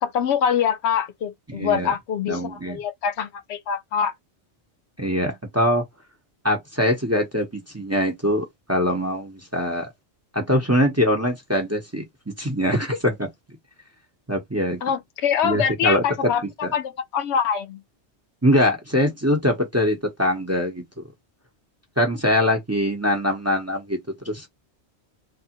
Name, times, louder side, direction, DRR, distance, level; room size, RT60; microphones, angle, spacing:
voice 1, 0.0-4.1 14.8-17.8, left 7 dB, 75° left, 0.8 m, -24 dB
voice 2, 1.5-1.9 2.3-2.8 5.0-5.8 6.4-9.9 10.3-13.3 14.3-14.8 15.4-16.3 16.6-16.7 18.4-20.8 22.0-24.0 24.2-24.5, equal, 15° right, 0.8 m, -23 dB
3.3 x 2.4 x 2.9 m
omnidirectional pair, 1.1 m